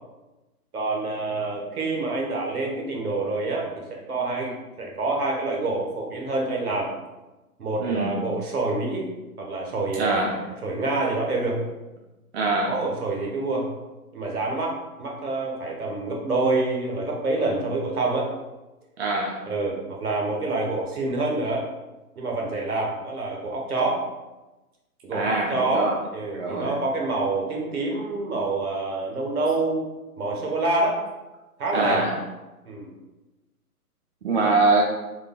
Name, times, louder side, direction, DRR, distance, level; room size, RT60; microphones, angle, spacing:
voice 1, 0.7-6.9 7.6-9.1 9.4-10.2 10.6-11.6 12.6-13.7 14.1-18.3 19.5-21.7 22.2-24.1 25.0-29.8 30.2-31.0 31.6-32.0 32.6-32.9, right 2 dB, 70° right, -2 dB, 1.2 m, -27 dB
voice 2, 7.8-8.2 10.0-10.4 12.3-12.7 19.0-19.4 25.1-26.0 26.3-26.8 31.7-32.1 34.2-34.8, right 3 dB, 45° right, -1 dB, 0.6 m, -23 dB
3.8 x 3.2 x 2.3 m, 1.1 s
figure-of-eight pair, 130°, 46 cm